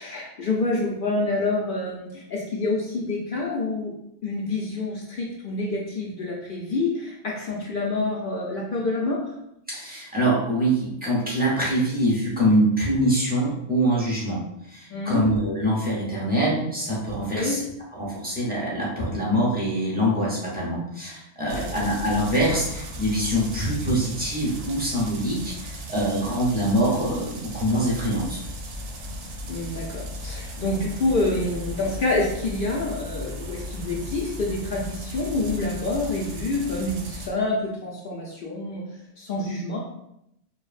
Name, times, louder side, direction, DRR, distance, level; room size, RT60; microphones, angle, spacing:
voice 1, 0.0-3.9 4.2-9.3 14.9-15.2 17.3-17.6 21.7-21.8 29.5-38.8 39.2-39.8, left 2 dB, 60° left, -3 dB, 0.6 m, -27 dB
voice 2, 9.7-14.4 14.7-17.6 17.9-28.4, right 1 dB, 10° right, -6 dB, 0.6 m, -24 dB
sound 1, 21.5-37.3, equal, 65° right, 0.7 m, -36 dB
3.1 x 2.0 x 2.4 m, 0.79 s
omnidirectional pair, 1.1 m